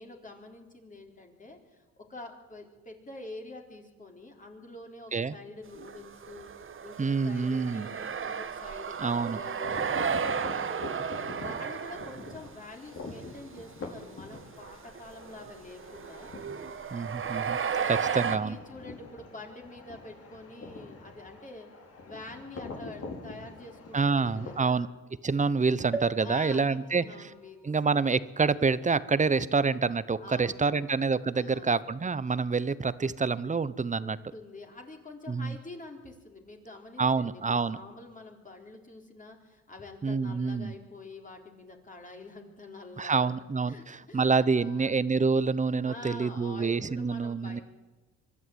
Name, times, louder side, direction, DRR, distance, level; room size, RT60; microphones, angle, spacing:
voice 1, 0.0-16.3 17.7-21.7 22.0-24.9 26.2-27.7 30.2-31.0 31.3-31.9 34.0-43.3 43.7-45.0 45.8-47.6, left 2 dB, 25° left, 1 dB, 3.9 m, -47 dB
sound 1, 5.8-12.5 13.0-13.3 13.6-13.7 14.3-18.4, right 7 dB, 45° right, 1.4 m, -34 dB
voice 2, 7.0-7.9 9.0-9.4 16.9-17.6 17.8-18.6 23.9-24.9 25.2-27.3 27.6-34.2 35.3-35.6 37.0-37.8 40.0-40.7 43.0-47.6, right 4 dB, 25° right, 16 dB, 0.9 m, -27 dB
sound 2, 9.6-24.6, left 3 dB, 50° left, 4.6 m, -45 dB
sound 3, 25.9-29.6 30.2-30.3 30.5-30.6, right 3 dB, 5° right, 2.9 m, -42 dB
24.0 x 12.5 x 9.5 m, 1.2 s
cardioid pair, 90°, 30 cm